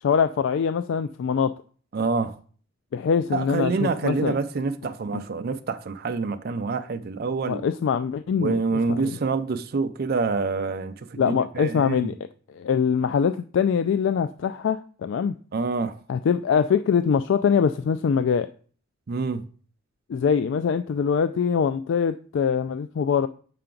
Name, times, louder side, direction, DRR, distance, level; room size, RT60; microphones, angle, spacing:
voice 1, 0.0-1.5 2.9-4.4 5.1-5.2 7.5-9.1 11.2-12.1 12.5-15.3 16.1-18.5 20.1-23.3, left 6 dB, 65° left, 0.3 m, -23 dB
voice 2, 1.9-2.4 3.3-7.6 8.4-12.1 15.5-16.0 19.1-19.4, right 4 dB, 50° right, 0.4 m, -27 dB
6.7 x 5.8 x 3.8 m
head